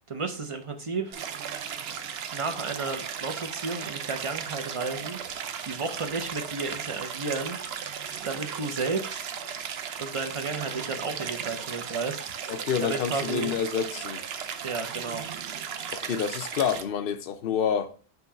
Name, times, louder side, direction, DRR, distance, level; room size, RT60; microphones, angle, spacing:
voice 1, 0.1-1.2 2.3-5.2 5.6-7.6 8.2-9.3 10.0-12.2 12.8-13.5 14.6-15.3, right 4 dB, 30° right, 0.8 m, -32 dB
Stream, 1.1-16.8, right 7 dB, 70° right, 0.8 m, -36 dB
voice 2, 12.5-14.3 15.9-17.9, left 7 dB, 60° left, 0.8 m, -28 dB
5.8 x 3.1 x 5.6 m
omnidirectional pair, 1.1 m